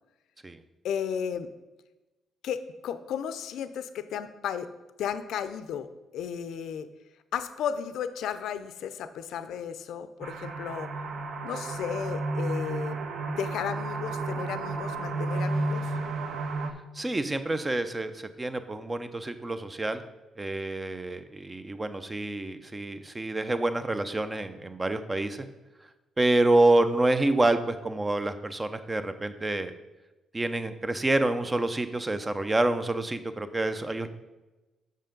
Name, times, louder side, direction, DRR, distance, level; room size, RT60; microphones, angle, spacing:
voice 1, 0.8-1.5 2.4-4.7 5.0-5.9 6.1-6.9 7.3-10.9 11.4-13.0 13.3-15.9, left 8 dB, 80° left, 12 dB, 0.5 m, -34 dB
sound 1, 10.2-16.7, right 2 dB, 60° right, 0.7 m, -32 dB
voice 2, 16.9-20.0 20.4-25.5 26.2-29.7 30.3-34.1, right 2 dB, 20° right, 10 dB, 0.6 m, -27 dB
6.4 x 5.6 x 5.2 m, 1.1 s
cardioid pair, 90°, 0 cm